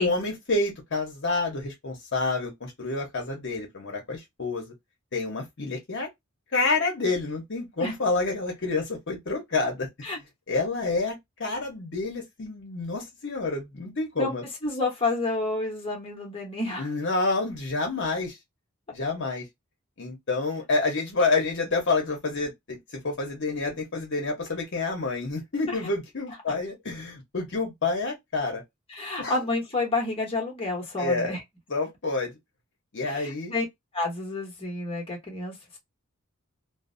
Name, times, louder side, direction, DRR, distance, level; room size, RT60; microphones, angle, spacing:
voice 1, 0.0-4.7 5.1-6.1 6.5-9.9 10.5-14.4 16.8-18.4 18.9-19.5 20.0-28.6 29.2-29.4 31.0-31.4 31.7-32.3 32.9-33.5, left 3 dB, 55° left, 0.9 m, -28 dB
voice 2, 14.6-16.9 25.7-25.8 28.9-31.4 33.0-33.6 33.9-35.5, left 2 dB, 25° left, 0.9 m, -29 dB
2.6 x 2.0 x 2.5 m
head